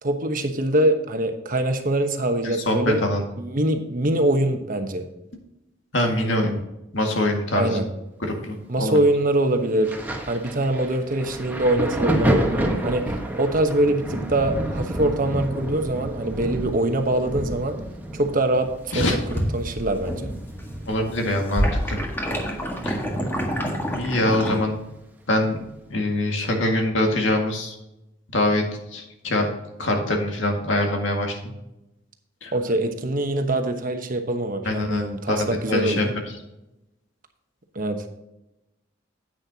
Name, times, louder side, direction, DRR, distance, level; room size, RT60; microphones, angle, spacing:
voice 1, 0.0-3.0 3.4-5.0 7.5-7.9 8.7-9.9 10.3-17.8 18.1-19.0 19.5-20.3 32.5-36.1 37.7-38.1, right 1 dB, 45° right, 6 dB, 1.1 m, -23 dB
voice 2, 2.4-3.2 5.9-6.6 6.9-7.8 8.2-9.0 18.9-19.2 20.9-22.0 22.8-23.0 23.9-24.8 25.3-25.6 25.9-27.8 28.3-28.6 28.9-29.5 29.8-31.4 32.4-32.5 34.6-36.1, left 1 dB, 80° left, 2 dB, 2.0 m, -24 dB
Thunder, 9.8-23.2 23.4-24.8 25.6-25.8, right 1 dB, 10° right, 1.3 m, -30 dB
sound 1, 18.7-20.3 20.6-24.6, equal, 10° left, 1.6 m, -27 dB
9.8 x 8.8 x 2.8 m, 0.92 s
head